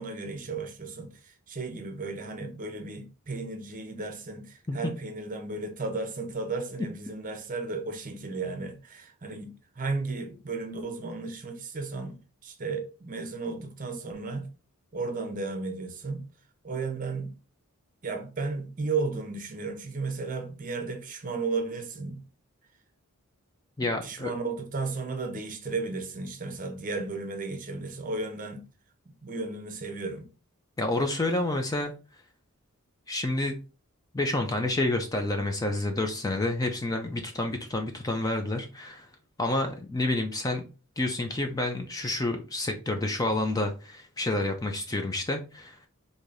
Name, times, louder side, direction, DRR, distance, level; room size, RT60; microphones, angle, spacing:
voice 1, 0.0-14.5 14.9-16.3 16.6-17.4 18.0-22.2 23.8-28.6 29.1-30.3, right 3 dB, 35° right, 0.7 m, -34 dB
voice 2, 23.8-24.3 30.8-31.9 33.1-33.5 34.1-39.1 39.4-40.6 41.0-45.8, left 2 dB, 15° left, 0.4 m, -29 dB
4.7 x 2.7 x 2.5 m
head